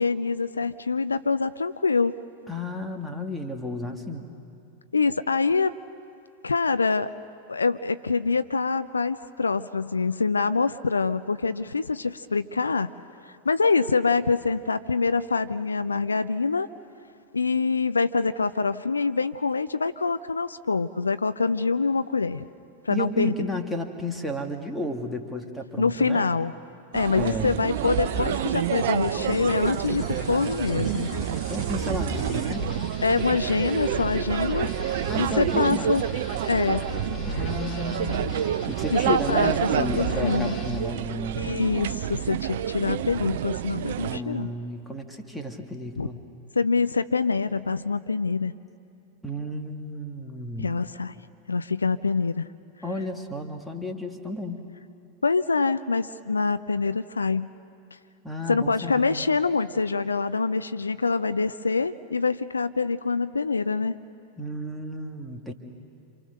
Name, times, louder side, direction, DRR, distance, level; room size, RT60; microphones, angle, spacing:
voice 1, 0.0-2.1 4.9-5.7 6.4-7.1 7.5-12.9 13.5-16.7 17.3-22.4 22.8-23.3 25.8-26.5 26.9-31.1 33.0-34.7 35.2-36.0 36.5-36.8 38.9-40.6 41.4-44.5 46.0-46.1 46.6-48.5 50.6-51.1 51.5-52.5 55.2-57.5 58.5-64.0, left 4 dB, 75° left, 13 dB, 0.5 m, -25 dB
voice 2, 2.5-4.3 22.9-26.3 27.2-27.7 31.3-32.7 35.1-36.1 37.2-38.4 38.7-41.6 44.0-46.2 49.2-50.7 52.8-54.7 58.2-59.2 64.4-65.5, left 1 dB, ahead, 3 dB, 2.2 m, -33 dB
sound 1, 26.9-44.2, right 11 dB, 55° right, 0.6 m, -28 dB
sound 2, 27.7-40.9, left 2 dB, 25° left, 2.8 m, -37 dB
28.0 x 27.5 x 6.6 m, 2.6 s
figure-of-eight pair, 90°, 0 cm